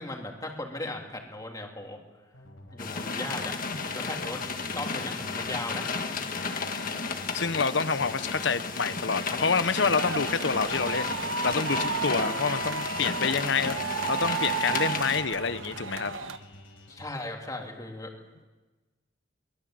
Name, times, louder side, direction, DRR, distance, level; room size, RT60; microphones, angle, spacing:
voice 1, 0.0-2.0 2.6-3.6 3.9-5.9 11.9-12.2 16.9-18.1, left 2 dB, 20° left, 1 dB, 3.1 m, -37 dB
sound 1, 2.3-17.1, left 1 dB, 85° left, 5.2 m, -50 dB
sound 2, 2.8-15.2, left 4 dB, 45° left, 1.6 m, -33 dB
voice 2, 6.4-7.0 7.3-16.1, left 5 dB, 60° left, 13 dB, 0.9 m, -28 dB
sound 3, 9.9-16.4, right 5 dB, 80° right, 1.2 m, -33 dB
23.0 x 21.5 x 7.7 m, 1.2 s
head